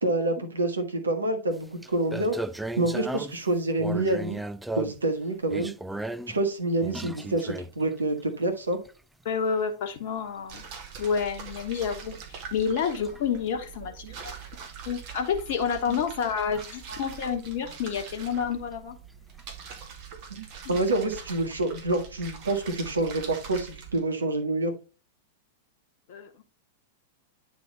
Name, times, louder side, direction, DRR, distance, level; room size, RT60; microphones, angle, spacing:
voice 1, 0.0-2.4 2.8-4.4 4.8-5.7 6.3-8.8 14.0-14.2 15.9-16.0 16.9-17.0 20.4-24.7, right 2 dB, 80° right, 5 dB, 1.6 m, -27 dB
sound 1, 1.5-1.6 1.8-3.5 3.8-5.1 5.5-6.4 6.8-8.0 8.7-8.9 10.6-10.8 12.5-12.6 13.0-13.2 15.6-15.7 16.1-16.2 16.6-17.0 19.4-19.5, right 1 dB, 5° right, 0.3 m, -35 dB
voice 2, 9.2-10.6 11.0-14.1 14.8-19.0 20.6-20.7 26.1-26.4, left 6 dB, 50° left, 4 dB, 1.1 m, -29 dB
sound 2, 10.5-24.0, right 7 dB, 45° right, 2.0 m, -43 dB
9.4 x 4.1 x 3.9 m, 0.34 s
figure-of-eight pair, 95°, 0 cm